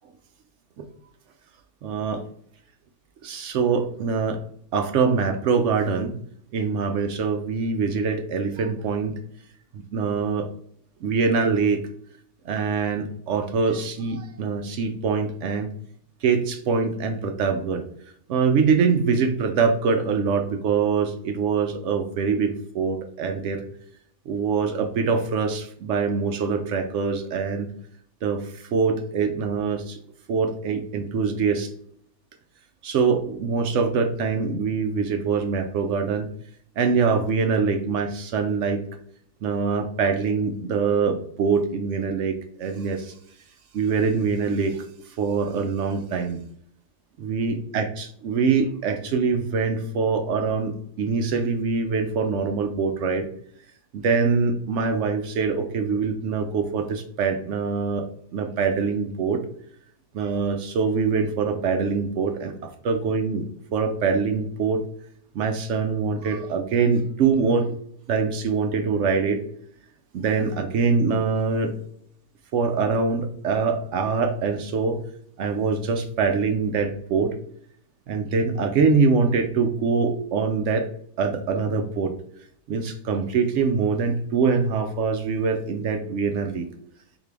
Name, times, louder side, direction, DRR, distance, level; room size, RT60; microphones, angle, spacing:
voice 1, 1.8-2.2 3.2-4.4 4.7-6.2 6.5-9.2 9.7-10.5 11.0-11.8 12.4-15.7 16.2-17.8 18.3-23.6 24.3-27.7 28.2-30.0 30.3-31.7 32.8-36.3 36.8-38.8 39.4-43.1 43.7-44.9 45.2-46.4 47.2-53.3 53.9-58.1 58.3-59.4 60.1-62.6 62.8-63.4 63.7-64.8 65.3-67.7 68.1-69.4 70.1-71.8 72.5-75.0 75.4-77.3 78.1-80.9 81.2-82.1 82.7-86.7, right 5 dB, 70° right, 4 dB, 0.7 m, -24 dB
3.9 x 2.7 x 3.4 m, 0.64 s
omnidirectional pair, 1.7 m